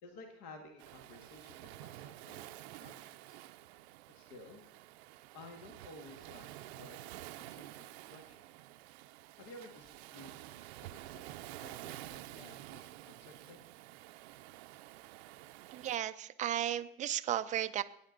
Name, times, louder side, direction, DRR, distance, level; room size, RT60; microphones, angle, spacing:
voice 1, 0.0-3.4 4.1-4.6 5.3-7.0 7.3-8.4 9.4-13.6, left 2 dB, 55° left, 4 dB, 1.9 m, -54 dB
Waves surf, 0.8-16.0, right 16 dB, 70° right, 0.7 m, -50 dB
voice 2, 15.7-17.8, right 11 dB, 25° right, 10 dB, 0.5 m, -34 dB
17.0 x 9.5 x 3.9 m, 0.74 s
supercardioid pair, 120°, 33 cm